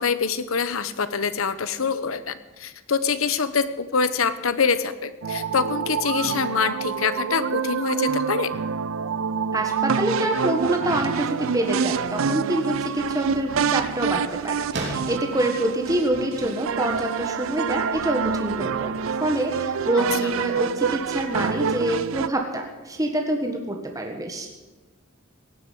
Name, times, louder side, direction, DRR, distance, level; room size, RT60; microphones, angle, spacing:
voice 1, 0.0-8.5 19.9-20.3, left 5 dB, 85° left, 13 dB, 0.9 m, -25 dB
sound 1, 5.2-22.3, right 6 dB, 75° right, 0.5 m, -27 dB
voice 2, 9.5-24.5, right 1 dB, 15° right, 2 dB, 1.5 m, -26 dB
sound 2, 12.7-22.5, right 2 dB, 60° right, 3.8 m, -42 dB
17.5 x 7.9 x 8.4 m, 1.2 s
head